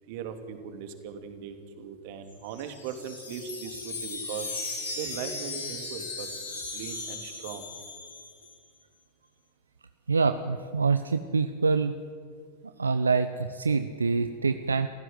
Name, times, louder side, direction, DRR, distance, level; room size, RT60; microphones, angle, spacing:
voice 1, 0.1-4.5 4.9-6.3 6.7-7.7, right 7 dB, 50° right, 8 dB, 2.8 m, -39 dB
Wind chime, 2.3-8.5, left 3 dB, 80° left, 6.5 m, -37 dB
voice 2, 10.1-11.9 12.8-14.9, right 4 dB, 80° right, 10 dB, 0.7 m, -25 dB
29.0 x 15.5 x 8.0 m, 2.1 s
figure-of-eight pair, 90°, 0 cm